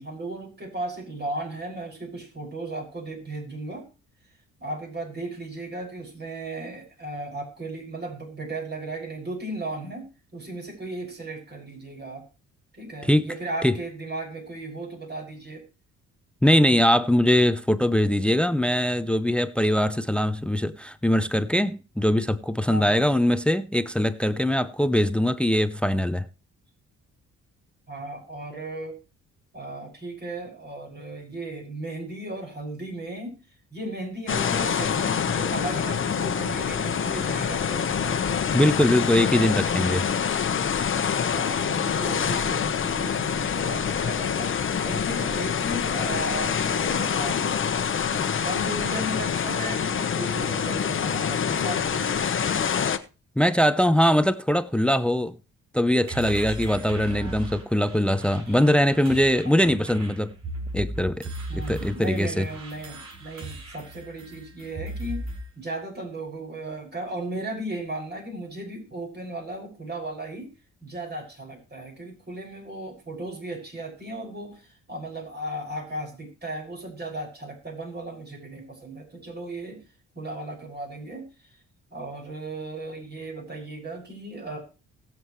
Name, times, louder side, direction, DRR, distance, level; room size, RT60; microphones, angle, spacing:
voice 1, 0.0-3.8 4.6-10.1 10.3-12.2 12.7-15.6 22.7-23.0 27.9-29.0 29.5-33.3 33.7-38.2 41.3-47.5 48.1-52.3 56.7-56.8 58.5-58.6 59.4-59.5 61.5-65.3 65.6-70.5 70.8-79.8 80.1-81.6 81.9-84.6, right 2 dB, 35° right, 6.3 m, -36 dB
voice 2, 13.0-13.3 13.6-13.7 16.4-26.2 38.5-40.1 53.4-55.3 55.7-60.3 60.7-62.5, left 1 dB, 5° left, 0.7 m, -22 dB
sound 1, 34.3-53.0, left 7 dB, 40° left, 1.1 m, -26 dB
sound 2, 56.0-65.5, right 1 dB, 60° right, 5.3 m, -37 dB
20.5 x 7.6 x 3.2 m
cardioid pair, 90°, 30 cm